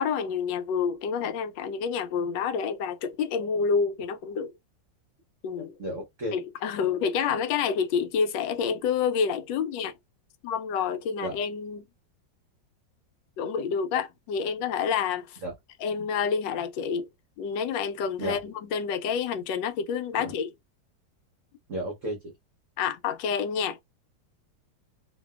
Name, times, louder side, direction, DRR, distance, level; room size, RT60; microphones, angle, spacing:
voice 1, 0.0-4.5 5.4-5.7 6.3-9.9 10.4-11.9 13.4-15.4 15.8-17.1 17.4-20.5 22.8-23.8, left 6 dB, 80° left, 1.2 m, -28 dB
voice 2, 5.8-6.4 11.2-11.4 15.4-15.5 18.2-18.4 20.1-20.3 21.7-22.3, equal, 55° right, 0.9 m, -33 dB
2.9 x 2.7 x 2.3 m
omnidirectional pair, 2.0 m